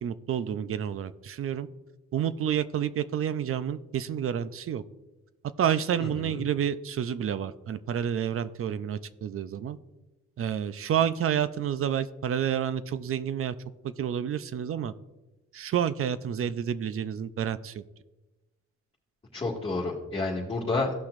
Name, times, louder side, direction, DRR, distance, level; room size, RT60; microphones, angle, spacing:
voice 1, 0.0-1.7 2.1-4.8 5.6-9.8 10.4-13.5 13.8-14.9 15.5-17.8, right 9 dB, 45° right, 14 dB, 0.5 m, -29 dB
voice 2, 6.0-6.4 19.3-20.9, left 3 dB, 20° left, -7 dB, 1.8 m, -30 dB
16.5 x 5.8 x 2.5 m, 1.1 s
cardioid pair, 90°, 30 cm